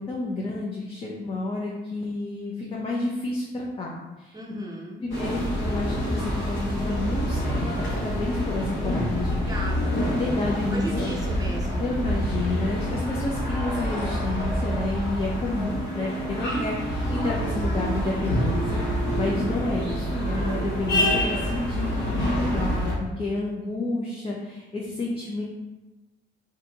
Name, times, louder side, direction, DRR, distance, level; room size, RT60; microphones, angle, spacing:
voice 1, 0.0-4.4 5.0-9.7 9.9-11.1 11.8-25.4, left 2 dB, 30° left, -3 dB, 0.6 m, -30 dB
voice 2, 4.3-5.0 9.5-10.0 10.7-11.9, right 1 dB, 20° right, -3 dB, 0.8 m, -35 dB
sound 1, 5.1-22.9, equal, 70° left, 1.2 m, -27 dB
sound 2, 15.5-22.6, right 6 dB, 75° right, 0.4 m, -37 dB
2.7 x 2.3 x 4.0 m, 1.1 s
cardioid pair, 90°, 20 cm